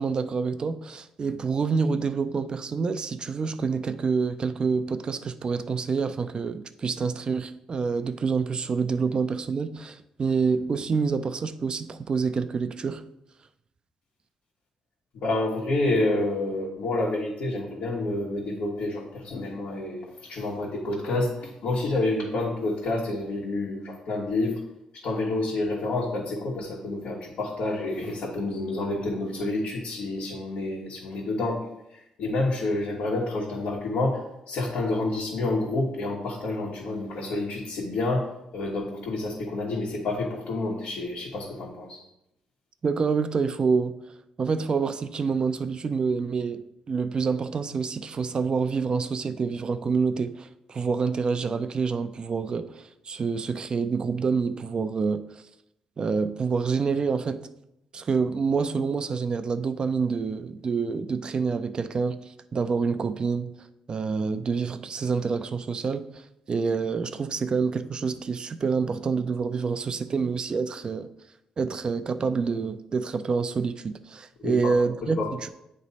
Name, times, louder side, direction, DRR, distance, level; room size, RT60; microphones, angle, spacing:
voice 1, 0.0-13.0 42.8-44.0 44.4-55.4 56.0-57.4 57.9-63.5 63.9-71.1 71.6-75.5, right 5 dB, 40° right, 0.4 m, -27 dB
voice 2, 15.1-24.6 24.9-31.6 31.9-34.2 34.5-38.2 38.5-42.0 74.4-74.7 75.1-75.3, left 2 dB, 80° left, 1.4 m, -28 dB
9.2 x 3.1 x 4.1 m
cardioid pair, 95°, 2 cm